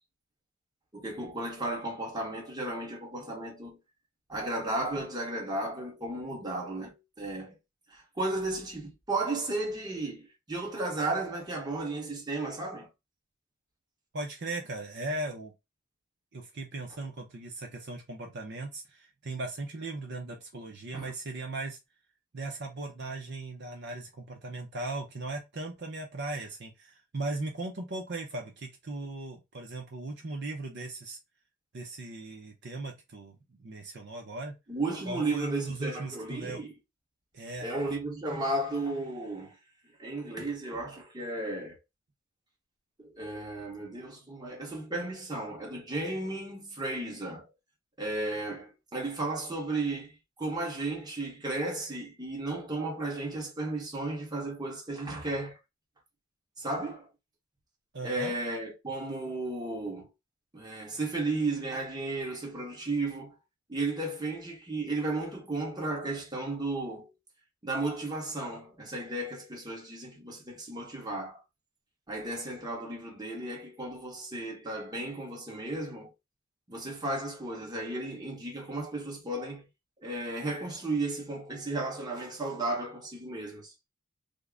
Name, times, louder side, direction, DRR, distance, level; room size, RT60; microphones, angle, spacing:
voice 1, 0.9-3.8 4.3-7.5 7.9-12.9 20.9-21.1 34.7-36.7 37.6-39.6 40.0-41.8 43.0-47.5 48.0-50.1 50.4-55.6 56.6-57.1 58.0-60.1 60.5-63.4 63.7-67.1 67.6-71.4 72.1-76.1 76.7-79.6 80.0-83.7, right 2 dB, 20° right, 1.1 m, -34 dB
voice 2, 14.1-15.5 16.3-21.8 22.3-31.2 31.7-34.5 35.1-36.6 37.3-37.7 57.9-58.3, right 2 dB, 55° right, 0.7 m, -38 dB
3.6 x 2.1 x 3.5 m
head